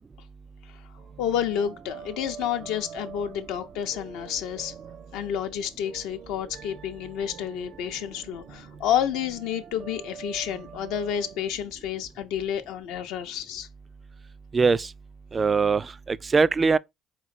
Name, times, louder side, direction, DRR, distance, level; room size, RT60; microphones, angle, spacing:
sound 1, 1.0-11.5, right 8 dB, 60° right, 0.6 m, -45 dB
voice 1, 1.2-4.7 5.1-13.7, left 9 dB, 70° left, 0.5 m, -30 dB
voice 2, 14.5-14.9 15.3-16.8, right 4 dB, 35° right, 0.3 m, -22 dB
4.2 x 3.1 x 4.0 m
hypercardioid pair, 50°, 0 cm